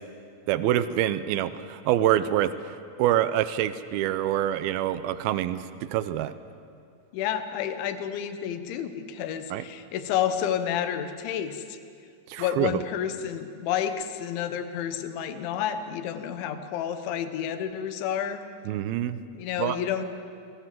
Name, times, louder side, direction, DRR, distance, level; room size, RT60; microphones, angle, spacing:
voice 1, 0.5-2.5 3.0-6.3 9.5-9.6 12.3-12.8 18.7-19.2 19.6-19.8, right 12 dB, 80° right, 13 dB, 2.2 m, -26 dB
voice 2, 7.1-11.8 12.4-18.4 19.3-20.1, left 9 dB, 85° left, 9 dB, 3.6 m, -30 dB
28.0 x 21.0 x 7.7 m, 2.3 s
omnidirectional pair, 5.2 m